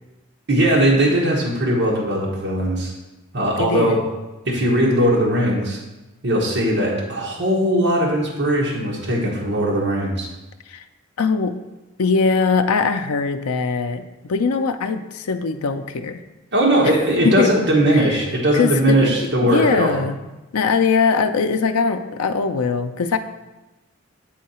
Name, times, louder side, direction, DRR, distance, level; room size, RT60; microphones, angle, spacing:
voice 1, 0.5-2.9 3.3-4.0 4.4-5.8 6.2-10.3 16.5-20.0, right 1 dB, 50° right, -4 dB, 1.3 m, -19 dB
voice 2, 3.6-4.0 10.7-10.8 11.2-11.5 12.0-16.2 16.8-17.5 17.9-18.3 18.5-20.2 20.5-23.2, left 5 dB, 80° left, 8 dB, 0.5 m, -21 dB
8.5 x 3.8 x 4.2 m, 1.1 s
head